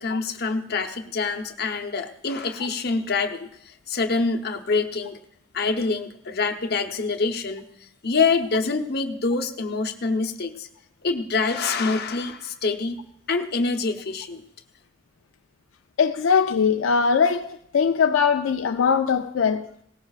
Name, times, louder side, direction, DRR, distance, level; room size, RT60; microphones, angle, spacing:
voice 1, 0.0-5.2 5.5-7.6 8.0-10.7 11.0-13.0 13.3-14.4, left 4 dB, 55° left, 0.9 m, -26 dB
voice 2, 16.0-19.7, left 6 dB, 80° left, 0.4 m, -21 dB
18.0 x 15.0 x 2.4 m
head